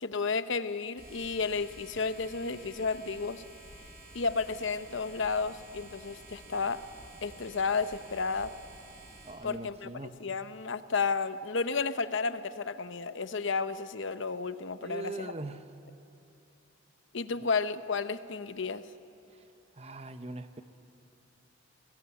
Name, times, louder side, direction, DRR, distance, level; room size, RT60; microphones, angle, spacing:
voice 1, 0.0-3.4 4.1-6.8 7.2-8.5 9.4-9.9 10.2-15.3 17.1-18.9, left 4 dB, 65° left, 12 dB, 0.8 m, -32 dB
sound 1, 1.0-9.3, right 2 dB, 50° right, 5.9 m, -51 dB
voice 2, 9.3-10.1 14.8-15.6 19.8-20.6, right 2 dB, 30° right, 10 dB, 0.9 m, -41 dB
21.5 x 20.0 x 9.8 m, 2.7 s
head